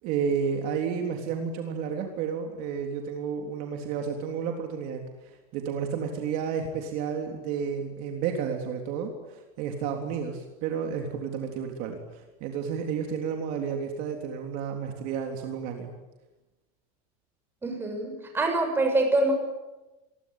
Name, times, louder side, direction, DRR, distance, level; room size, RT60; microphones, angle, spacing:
voice 1, 0.0-15.9, right 6 dB, 50° right, 3 dB, 3.7 m, -31 dB
voice 2, 17.6-19.3, right 2 dB, 10° right, 3 dB, 6.6 m, -25 dB
28.5 x 22.0 x 9.3 m, 1.1 s
supercardioid pair, 165°, 19 cm